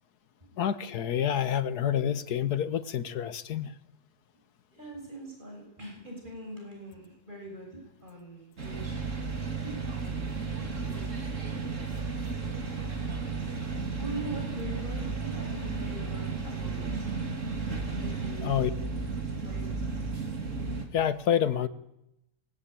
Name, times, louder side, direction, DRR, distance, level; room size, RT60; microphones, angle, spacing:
voice 1, 0.6-3.7 18.4-18.7 20.9-21.7, left 9 dB, 80° left, 14 dB, 1.7 m, -28 dB
voice 2, 4.7-9.0 9.6-10.3 10.9-11.8 14.0-17.1 18.0-18.7 19.4-19.7, right 2 dB, 30° right, 0 dB, 7.3 m, -43 dB
sound 1, 8.6-20.8, right 4 dB, 50° right, 3.0 m, -33 dB
25.0 x 20.5 x 9.0 m, 0.87 s
omnidirectional pair, 1.7 m